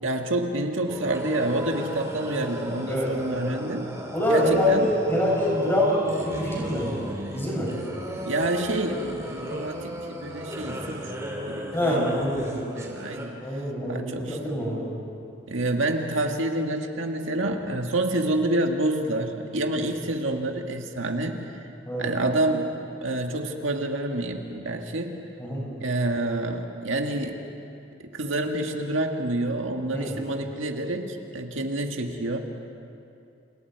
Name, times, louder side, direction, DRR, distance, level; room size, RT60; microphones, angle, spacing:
voice 1, 0.0-3.9 4.3-4.9 8.3-11.1 11.5-12.1 12.7-14.4 15.5-21.6 22.0-22.7 23.0-25.2 25.8-27.4 28.1-32.4, right 1 dB, 85° right, 3 dB, 1.8 m, -28 dB
sound 1, 0.9-13.3, equal, 15° right, 2.7 m, -35 dB
voice 2, 4.1-6.9 7.3-7.7 11.7-12.5 13.4-14.9 21.9-22.1 25.4-25.7 29.9-30.1, left 1 dB, 10° left, -5 dB, 7.4 m, -25 dB
29.5 x 29.0 x 4.7 m, 2.7 s
head